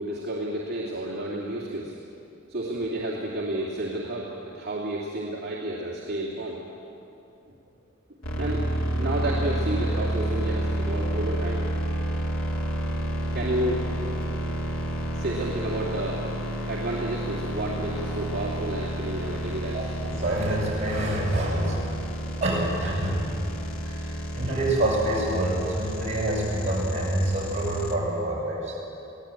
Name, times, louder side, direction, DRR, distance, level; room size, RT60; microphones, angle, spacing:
voice 1, 0.0-1.9 2.5-6.6 8.4-8.7 9.0-11.6 13.3-13.8 15.2-16.3 16.7-19.9, right 1 dB, 50° right, -5 dB, 2.6 m, -31 dB
sound 1, 8.2-28.0, equal, 80° left, 2.5 m, -30 dB
voice 2, 19.7-21.8 22.4-23.4 23.9-28.8, right 1 dB, 30° right, -5 dB, 7.6 m, -27 dB
23.5 x 17.0 x 8.9 m, 2.9 s
head